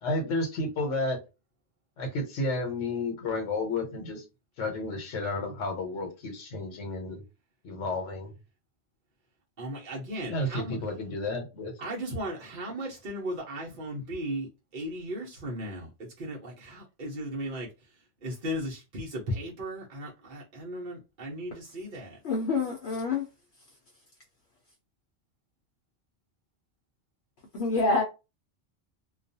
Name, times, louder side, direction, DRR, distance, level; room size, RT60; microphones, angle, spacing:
voice 1, 0.0-1.2 2.0-4.2 4.6-7.2 7.6-8.3 10.3-11.7, left 2 dB, 90° left, 1.1 m, -31 dB
voice 2, 9.6-10.8 11.8-17.7 18.2-22.2, equal, 50° right, 0.8 m, -36 dB
voice 3, 22.2-23.3 27.5-28.0, left 3 dB, 65° left, 0.9 m, -26 dB
2.3 x 2.3 x 2.6 m
omnidirectional pair, 1.2 m